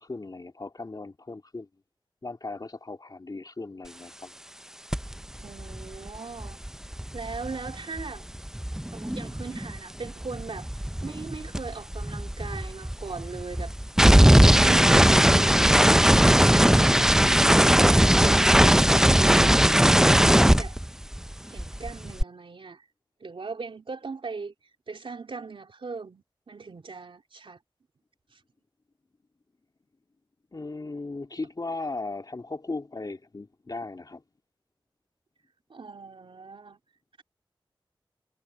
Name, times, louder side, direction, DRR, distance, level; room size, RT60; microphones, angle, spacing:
voice 1, 0.0-1.7 2.2-4.3 30.5-34.2, left 3 dB, 45° left, 2.6 m, -37 dB
sound 1, 4.9-5.1 5.4-9.8 10.0-21.3 21.6-22.2, right 1 dB, 5° right, 0.5 m, -19 dB
voice 2, 5.4-6.6 7.1-8.2 8.9-13.7 14.6-20.8 21.5-22.9 23.2-24.5 24.9-27.6 28.3-28.4 35.7-36.8, right 4 dB, 85° right, 3.4 m, -39 dB
wide cardioid pair, 75°, 9 cm